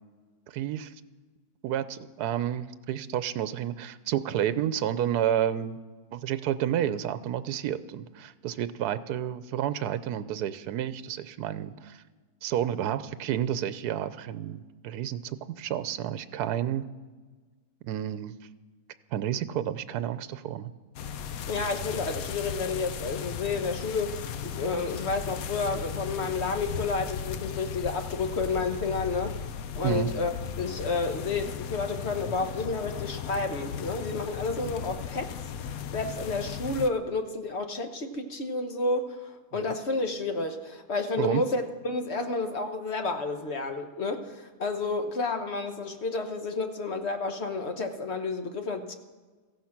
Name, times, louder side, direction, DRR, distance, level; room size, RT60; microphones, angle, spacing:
voice 1, 0.5-0.9 1.6-5.8 6.1-12.0 12.4-16.8 17.8-18.4 19.1-20.7 29.8-30.1 41.2-41.4, right 10 dB, 80° right, 14 dB, 1.2 m, -30 dB
sound 1, 21.0-36.9, left 8 dB, 70° left, 1.1 m, -36 dB
voice 2, 21.5-29.4 29.7-35.3 35.6-48.9, left 3 dB, 45° left, 7 dB, 1.3 m, -31 dB
16.0 x 15.0 x 5.9 m, 1.4 s
omnidirectional pair, 1.7 m